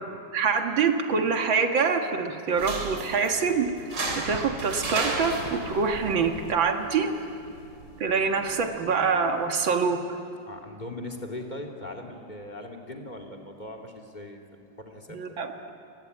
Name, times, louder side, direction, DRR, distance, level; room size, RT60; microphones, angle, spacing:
voice 1, 0.3-3.7 4.2-7.1 8.0-10.0 15.1-15.5, right 5 dB, 85° right, 4 dB, 2.5 m, -25 dB
sound 1, 2.5-9.5, right 3 dB, 65° right, 3.8 m, -36 dB
sound 2, 4.0-6.5, left 5 dB, 65° left, 1.9 m, -41 dB
voice 2, 10.5-14.4 14.8-15.2, left 1 dB, 25° left, 4 dB, 2.7 m, -39 dB
29.5 x 19.5 x 9.6 m, 2.5 s
omnidirectional pair, 2.0 m